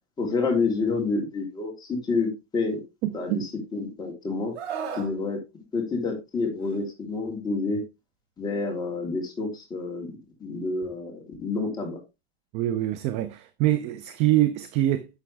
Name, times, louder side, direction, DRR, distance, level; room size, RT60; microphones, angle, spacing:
voice 1, 0.2-2.8 3.1-4.5 4.9-5.4 5.7-7.8 8.4-12.0, left 3 dB, 10° left, 3.3 m, -28 dB
voice 2, 3.0-3.4 12.5-15.1, right 14 dB, 20° right, 0.4 m, -24 dB
Screaming, 4.5-5.1 6.6-6.8, right 7 dB, 65° right, 4.1 m, -34 dB
11.0 x 6.8 x 3.3 m
supercardioid pair, 160°, 32 cm